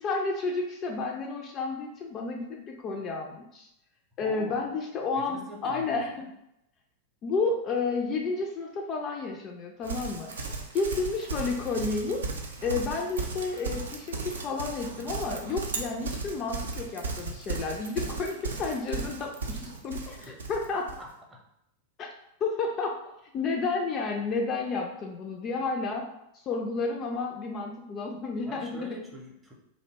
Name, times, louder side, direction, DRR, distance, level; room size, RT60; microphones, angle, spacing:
voice 1, 0.0-3.7 4.2-6.3 7.2-12.2 12.6-20.9 22.0-22.1 22.4-23.0 23.3-26.1 26.3-28.9, left 4 dB, 30° left, 1 dB, 0.3 m, -31 dB
voice 2, 4.2-4.7 5.2-6.3 20.2-20.3 21.0-21.4 28.5-29.5, equal, 10° right, -1 dB, 0.6 m, -44 dB
Livestock farm animals working animals, 9.8-21.0, right 3 dB, 65° right, 0.4 m, -36 dB
2.6 x 2.1 x 2.8 m, 0.83 s
figure-of-eight pair, 90°, 0 cm